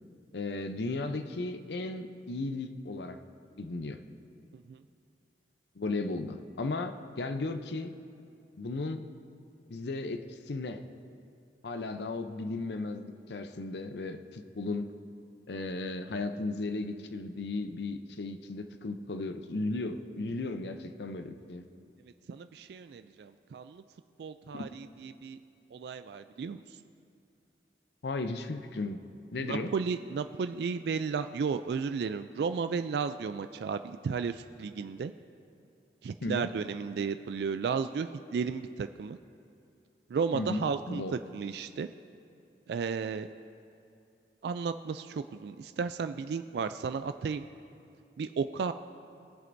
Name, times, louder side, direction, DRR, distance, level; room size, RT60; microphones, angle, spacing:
voice 1, 0.3-3.2 3.6-4.0 5.8-7.9 8.6-9.1 9.7-10.8 11.6-14.9 15.5-21.6 24.5-24.7 28.0-29.0 29.3-29.7 36.2-36.5 40.3-41.1, left 2 dB, 70° left, 8 dB, 0.6 m, -35 dB
voice 2, 22.3-23.8 24.2-25.4 25.7-26.6 29.4-35.1 36.0-39.2 40.1-41.9 42.7-43.3 44.4-47.4 48.2-48.7, right 5 dB, 65° right, 10 dB, 0.3 m, -33 dB
21.0 x 7.7 x 2.6 m, 2.6 s
head